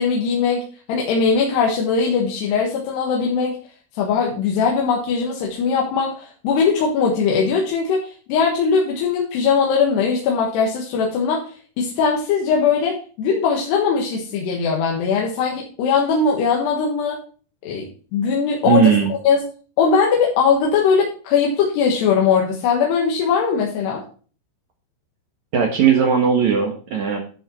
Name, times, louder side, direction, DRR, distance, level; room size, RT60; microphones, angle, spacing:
voice 1, 0.0-3.6 3.9-17.2 17.6-17.9 18.1-18.9 19.2-19.4 19.8-24.0, left 5 dB, 80° left, -1 dB, 3.5 m, -20 dB
voice 2, 18.7-19.1 25.5-27.2, right 7 dB, 60° right, 2 dB, 2.1 m, -17 dB
11.0 x 6.6 x 4.4 m, 0.40 s
omnidirectional pair, 4.9 m